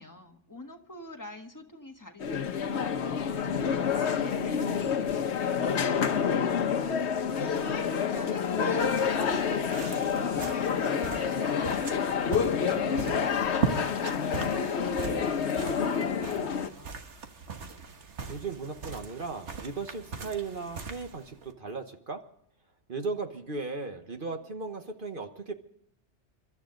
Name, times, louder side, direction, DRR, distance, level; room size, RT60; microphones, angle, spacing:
voice 1, 0.0-6.9 7.4-12.0 12.6-17.0, left 2 dB, 15° left, 2 dB, 1.7 m, -46 dB
sound 1, 2.2-16.7, left 6 dB, 75° left, 1.2 m, -28 dB
sound 2, 8.8-21.5, right 5 dB, 80° right, 1.7 m, -39 dB
voice 2, 18.3-22.2 22.9-25.5, right 4 dB, 50° right, 6 dB, 1.3 m, -36 dB
29.5 x 12.5 x 3.9 m, 0.69 s
omnidirectional pair, 1.2 m